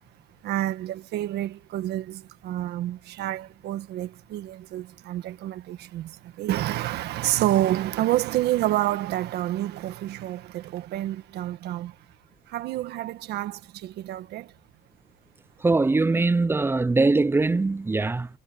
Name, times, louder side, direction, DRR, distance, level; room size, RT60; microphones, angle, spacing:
voice 1, 0.4-11.9 12.5-14.5, right 14 dB, 75° right, 1.6 m, -28 dB
voice 2, 15.6-18.3, right 3 dB, 15° right, 0.5 m, -22 dB
cardioid pair, 110°, 17 cm